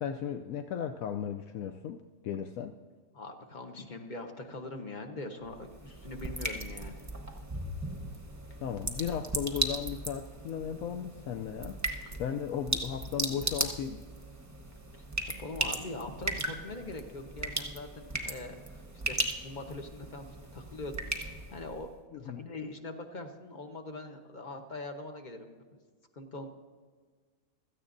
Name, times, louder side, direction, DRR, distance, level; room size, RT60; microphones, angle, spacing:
voice 1, 0.0-2.8 8.6-11.8 12.2-14.0 22.1-22.5, left 8 dB, 80° left, 6 dB, 1.0 m, -36 dB
voice 2, 3.1-7.0 12.1-12.2 15.4-20.3 20.5-25.6 26.2-26.5, left 2 dB, 35° left, 5 dB, 1.0 m, -42 dB
sound 1, 5.4-21.9, right 2 dB, 15° right, 0.8 m, -37 dB
16.5 x 13.5 x 2.6 m, 1.5 s
omnidirectional pair, 1.5 m